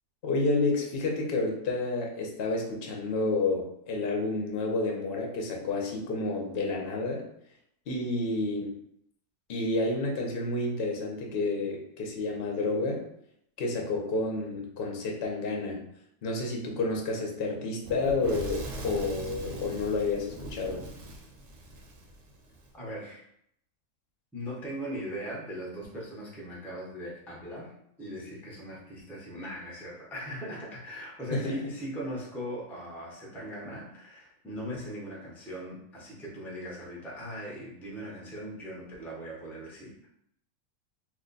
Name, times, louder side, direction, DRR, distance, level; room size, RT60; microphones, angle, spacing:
voice 1, 0.2-7.2 7.9-8.7 9.5-13.0 13.6-15.8 16.2-20.8 31.3-31.6, left 2 dB, 55° left, 0 dB, 0.7 m, -30 dB
Fire / Explosion, 17.8-22.7, right 1 dB, 65° right, 1.0 m, -41 dB
voice 2, 22.7-23.2 24.3-27.7 28.0-40.1, equal, ahead, -4 dB, 0.4 m, -39 dB
3.0 x 2.1 x 3.8 m, 0.72 s
omnidirectional pair, 1.6 m